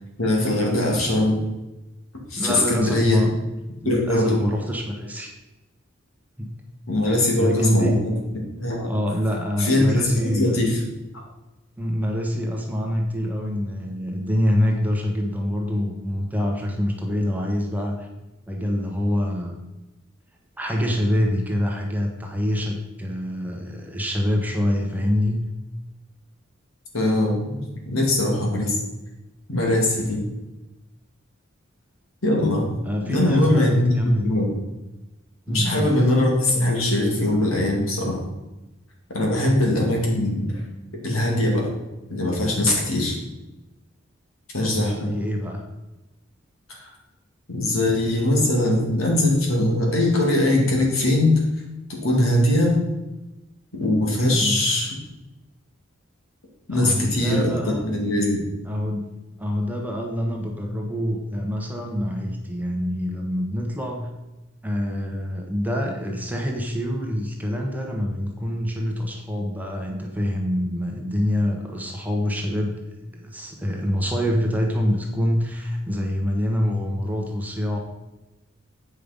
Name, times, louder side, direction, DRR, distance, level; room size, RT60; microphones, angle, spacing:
voice 1, 0.2-1.4 2.3-3.3 3.8-4.4 6.9-8.1 8.6-8.9 9.6-10.8 11.1-11.2 26.9-28.8 29.5-30.2 32.2-32.7 33.0-34.5 35.5-38.2 39.1-40.6 41.0-41.7 42.1-43.2 44.5-45.1 46.7-46.8 47.5-51.4 52.0-52.8 53.7-54.9 56.7-58.4, left 1 dB, 85° left, -1 dB, 2.5 m, -21 dB
voice 2, 2.4-3.3 4.1-5.3 6.4-6.5 7.0-8.0 8.9-10.6 11.8-18.1 18.5-19.6 20.6-25.4 32.8-34.3 35.5-35.9 39.4-39.6 44.6-45.6 54.1-54.6 56.7-57.9 58.7-59.1 59.4-64.1 64.6-72.8 73.1-77.8, equal, 10° right, 1 dB, 1.1 m, -26 dB
8.7 x 5.4 x 5.2 m, 1.0 s
head